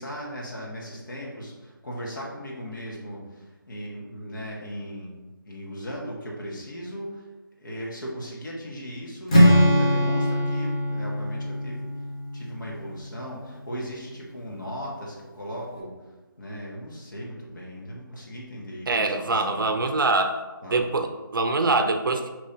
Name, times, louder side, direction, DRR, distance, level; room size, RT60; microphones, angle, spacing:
voice 1, 0.0-7.3 7.6-11.9 12.3-15.9 16.4-19.7 20.6-20.8, equal, 60° left, -3 dB, 1.2 m, -37 dB
Strum, 9.3-13.4, equal, 15° left, 0.4 m, -22 dB
voice 2, 18.9-20.4 20.7-22.3, right 3 dB, 65° right, 6 dB, 0.5 m, -24 dB
5.2 x 3.0 x 2.7 m, 1.2 s
figure-of-eight pair, 170°, 12 cm